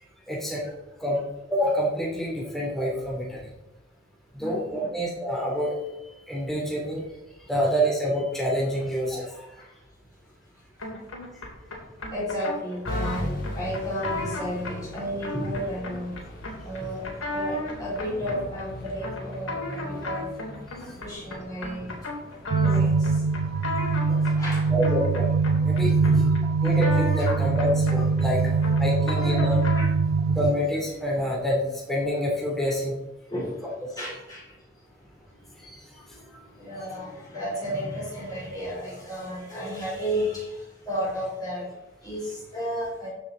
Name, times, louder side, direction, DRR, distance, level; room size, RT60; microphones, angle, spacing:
voice 1, 0.3-0.6 1.0-1.2 1.5-3.4 4.3-5.8 6.3-7.0 7.5-9.5 20.8-20.9 24.7-25.3 25.6-25.9 26.6-29.6 30.3-33.0 35.6-35.8, equal, ahead, -4 dB, 3.1 m, -27 dB
voice 2, 4.4-4.9 9.6-9.7 10.5-10.6 12.1-16.1 16.6-20.4 21.0-23.3 24.1-24.7 25.7-26.6 27.3-27.4 28.3-28.4 29.0-29.2 29.8-29.9 33.3-43.1, equal, 20° left, -6 dB, 4.2 m, -33 dB
sound 1, 10.8-30.0, left 2 dB, 75° left, 3.3 m, -36 dB
sound 2, 12.8-31.1, left 1 dB, 45° left, 2.8 m, -41 dB
sound 3, 22.5-30.5, right 4 dB, 85° right, 0.4 m, -23 dB
14.5 x 6.7 x 4.0 m, 0.95 s
head